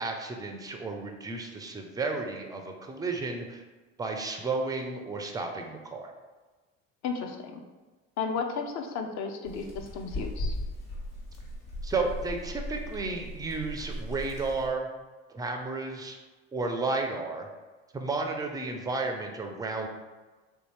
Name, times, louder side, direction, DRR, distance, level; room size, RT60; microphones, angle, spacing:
voice 1, 0.0-3.6 4.0-6.1 11.8-14.9 15.3-16.2 16.5-17.5 17.9-19.9, right 3 dB, 10° right, 3 dB, 0.3 m, -32 dB
voice 2, 7.0-7.6 8.2-10.5, left 5 dB, 45° left, 4 dB, 0.6 m, -33 dB
sound 1, 9.4-14.7, left 1 dB, 65° left, 1.1 m, -37 dB
3.2 x 2.7 x 3.0 m, 1.3 s
hypercardioid pair, 65°, 40 cm